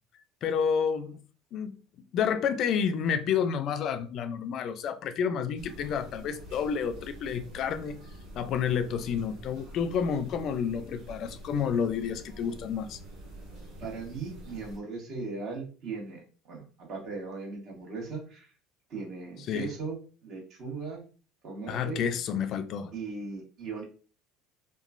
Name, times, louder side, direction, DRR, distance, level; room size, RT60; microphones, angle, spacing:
voice 1, 0.4-1.2 1.5-1.8 2.1-8.0 8.3-13.0 19.4-19.7 21.7-22.9, left 7 dB, 50° left, 0.3 m, -30 dB
sound 1, 5.6-14.8, right 1 dB, 85° right, 1.2 m, -47 dB
voice 2, 13.8-18.5 18.9-20.0 20.2-21.0 21.4-22.1 22.9-23.8, right 4 dB, 50° right, 1.3 m, -38 dB
2.9 x 2.2 x 2.4 m
supercardioid pair, 110°, 0 cm